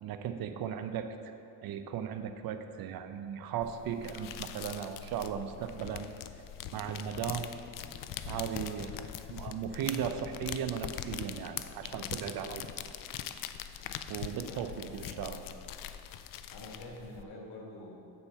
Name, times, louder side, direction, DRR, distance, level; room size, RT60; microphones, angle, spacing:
voice 1, 0.0-1.3 1.6-6.1 6.7-7.5 8.2-8.9 9.3-12.6 14.1-15.4, right 8 dB, 65° right, 8 dB, 0.6 m, -37 dB
sound 1, 3.6-17.2, left 10 dB, 60° left, 0.5 m, -42 dB
voice 2, 14.5-15.7 16.5-18.1, left 1 dB, 80° left, -1 dB, 1.6 m, -47 dB
8.0 x 4.4 x 5.5 m, 2.6 s
cardioid pair, 95°, 38 cm